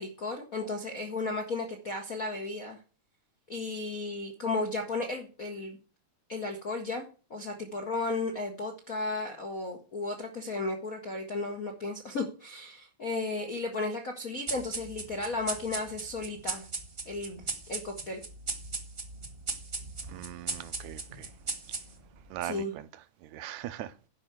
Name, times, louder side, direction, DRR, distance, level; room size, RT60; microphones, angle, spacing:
voice 1, 0.0-2.8 3.5-5.8 6.3-7.0 7.3-16.7 17.1-18.2 22.4-22.7, left 3 dB, 75° left, 0.8 m, -34 dB
sound 1, 14.5-22.2, right 4 dB, 35° right, 0.9 m, -38 dB
voice 2, 20.1-21.3 22.3-22.9 23.2-23.9, right 12 dB, 80° right, 2.1 m, -40 dB
11.0 x 5.4 x 7.9 m
omnidirectional pair, 3.3 m